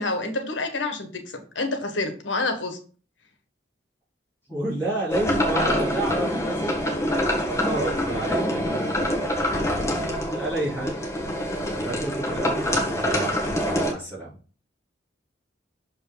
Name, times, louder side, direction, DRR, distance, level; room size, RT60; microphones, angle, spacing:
voice 1, 0.0-2.8, left 2 dB, 85° left, 6 dB, 1.5 m, -28 dB
voice 2, 4.5-7.1 7.5-8.8 10.3-10.9 11.8-14.3, right 2 dB, 15° right, -14 dB, 3.8 m, -30 dB
sound 1, 5.1-13.9, equal, 15° left, 1.5 m, -25 dB
6.5 x 5.4 x 3.9 m, 0.40 s
head